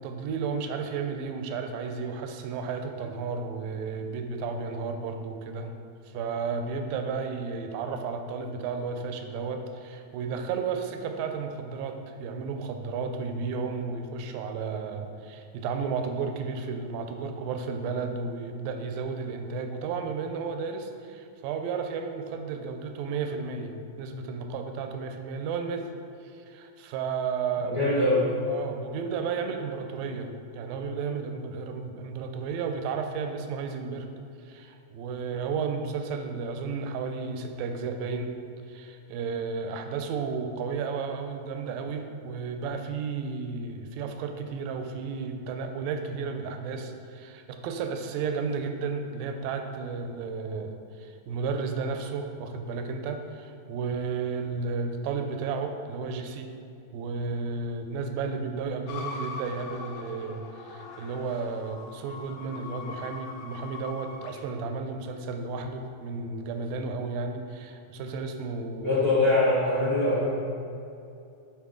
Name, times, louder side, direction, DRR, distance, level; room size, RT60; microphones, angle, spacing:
voice 1, 0.0-5.7 6.1-25.9 26.3-28.0 28.5-34.1 34.5-38.3 38.7-56.5 56.9-68.9, right 5 dB, 85° right, 6 dB, 2.3 m, -33 dB
voice 2, 27.6-28.3 68.7-70.3, left 2 dB, 30° left, -9 dB, 1.0 m, -23 dB
sound 1, 58.9-64.4, left 4 dB, 90° left, 1.5 m, -41 dB
9.1 x 4.5 x 3.7 m, 2.5 s
omnidirectional pair, 4.0 m